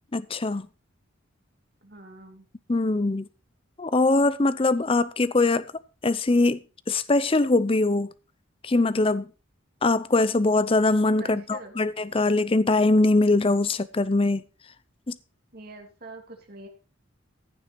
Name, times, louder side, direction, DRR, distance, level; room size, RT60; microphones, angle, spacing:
voice 1, 0.1-0.7 2.7-3.3 3.8-5.7 6.0-6.6 6.9-8.1 8.6-9.3 9.8-14.4 15.1-15.2, left 2 dB, 25° left, 0.5 m, -22 dB
voice 2, 1.8-2.5 11.2-11.7 15.5-16.7, right 2 dB, 50° right, 2.8 m, -44 dB
15.0 x 7.0 x 4.5 m
head